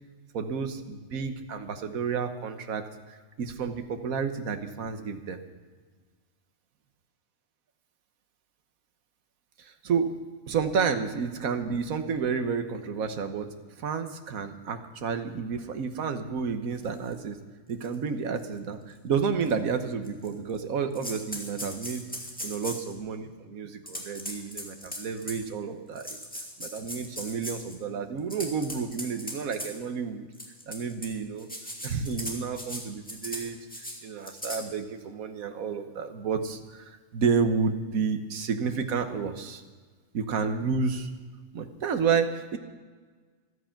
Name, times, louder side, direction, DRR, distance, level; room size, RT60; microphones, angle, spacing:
voice 1, 0.3-5.4 9.6-10.2 10.5-13.5 13.8-17.4 17.7-22.0 22.4-26.3 26.6-30.3 30.7-31.5 31.8-33.6 34.0-39.6 40.1-41.1 41.5-42.6, right 5 dB, 75° right, 7 dB, 1.5 m, -30 dB
sound 1, 17.1-17.2 17.8-18.0 18.4-18.5 19.4-19.5 20.1-20.6 20.9-22.9 23.9-25.4 26.0-27.8 28.2-29.7 30.3-31.1 31.4-32.8 33.1-33.4 33.7-33.9 34.2-34.6, equal, 5° left, 2.4 m, -38 dB
14.5 x 13.0 x 5.8 m, 1.4 s
omnidirectional pair, 1.5 m